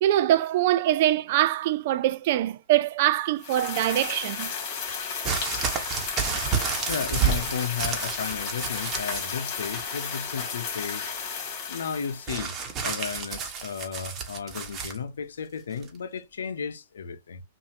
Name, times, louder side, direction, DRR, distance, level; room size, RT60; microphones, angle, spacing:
voice 1, 0.0-4.5, right 13 dB, 50° right, 0.5 m, -23 dB
sound 1, 3.4-12.4, left 6 dB, 40° left, 2.6 m, -33 dB
sound 2, 5.2-9.3 9.6-10.2 12.3-15.0 15.8-15.9, right 6 dB, 25° right, 1.2 m, -30 dB
voice 2, 6.9-11.1 11.7-12.5 12.8-17.4, left 6 dB, 85° left, 0.8 m, -34 dB
5.7 x 2.7 x 2.8 m
hypercardioid pair, 135°, 0 cm